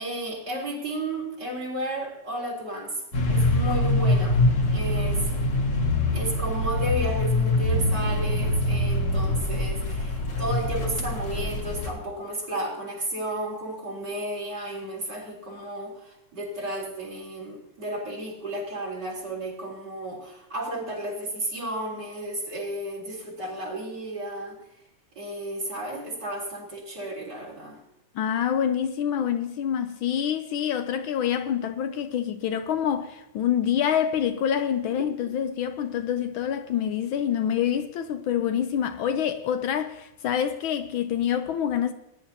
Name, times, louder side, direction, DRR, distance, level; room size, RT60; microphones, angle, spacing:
voice 1, 0.0-3.0 3.3-4.4 4.7-5.3 6.1-24.6 25.2-27.8 35.0-35.1, right 1 dB, 50° right, 4.1 m, -33 dB
sound 1, 3.1-11.9, left 2 dB, 60° left, 2.5 m, -24 dB
voice 2, 28.1-41.9, left 9 dB, 75° left, 1.4 m, -26 dB
20.0 x 11.0 x 2.8 m
omnidirectional pair, 2.4 m